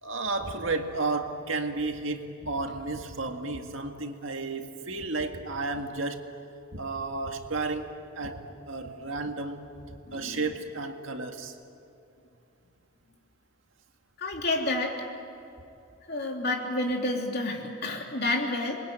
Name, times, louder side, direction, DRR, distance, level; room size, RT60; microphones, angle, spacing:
voice 1, 0.0-6.3 6.7-9.7 10.1-11.5, right 3 dB, 70° right, 5 dB, 1.9 m, -32 dB
voice 2, 10.1-10.4 14.2-14.9 16.1-18.8, left 2 dB, 50° left, 1 dB, 3.4 m, -29 dB
27.5 x 21.5 x 9.0 m, 2.6 s
head